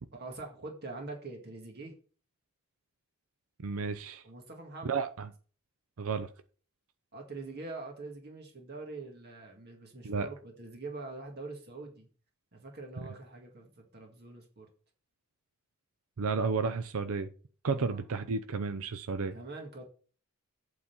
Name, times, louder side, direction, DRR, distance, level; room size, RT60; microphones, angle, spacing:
voice 1, 0.1-1.9 4.2-5.0 7.1-12.1 12.5-14.7 17.7-18.0 19.3-19.8, right 3 dB, 45° right, 1.8 m, -44 dB
voice 2, 3.6-4.2 4.8-5.3 6.0-6.3 10.0-10.3 16.2-17.3 17.6-19.4, right 4 dB, 75° right, 0.6 m, -32 dB
8.6 x 4.0 x 7.0 m
head